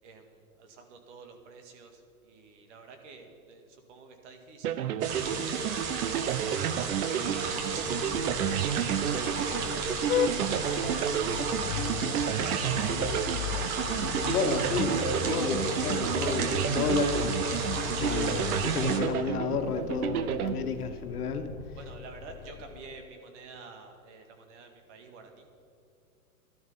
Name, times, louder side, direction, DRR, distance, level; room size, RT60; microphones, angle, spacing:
voice 1, 0.0-4.7 5.3-9.7 10.1-13.1 21.7-25.5, right 4 dB, 50° right, 5 dB, 2.1 m, -49 dB
sound 1, 4.6-21.2, right 9 dB, 80° right, 0.8 m, -31 dB
sound 2, 5.0-19.0, right 5 dB, 15° right, 0.3 m, -33 dB
Vehicle horn car horn honking, 7.8-23.1, left 11 dB, 70° left, 0.6 m, -38 dB
voice 2, 14.2-17.3 18.0-21.5, left 5 dB, 85° left, 7 dB, 1.4 m, -31 dB
13.0 x 12.0 x 5.6 m, 2.6 s
hypercardioid pair, 135°, 44 cm